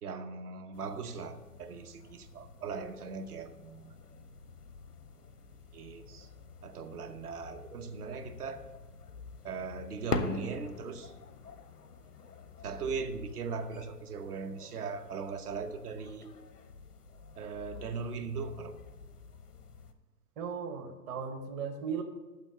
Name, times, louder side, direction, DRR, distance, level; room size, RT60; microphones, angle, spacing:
voice 1, 0.0-4.0 5.7-6.3 6.6-8.7 9.4-11.1 12.6-16.3 17.4-18.7, right 5 dB, 75° right, 8 dB, 1.0 m, -39 dB
sound 1, 0.7-19.9, left 4 dB, 90° left, 0.9 m, -45 dB
voice 2, 20.4-22.0, right 6 dB, 20° right, 6 dB, 0.6 m, -37 dB
7.2 x 5.6 x 6.7 m, 1.2 s
hypercardioid pair, 120°, 46 cm